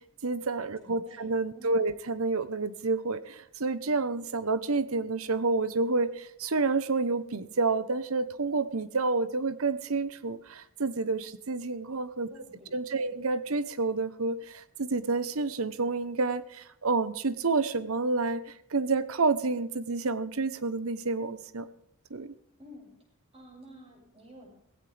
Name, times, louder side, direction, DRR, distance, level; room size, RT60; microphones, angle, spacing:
voice 1, 0.0-12.3 12.7-18.4 18.7-21.7 22.1-22.3, right 3 dB, 75° right, 14 dB, 1.0 m, -29 dB
voice 2, 0.8-1.9 12.3-13.2 22.6-22.9 23.3-24.5, equal, 25° right, 0 dB, 6.6 m, -52 dB
16.5 x 16.5 x 3.5 m, 0.70 s
head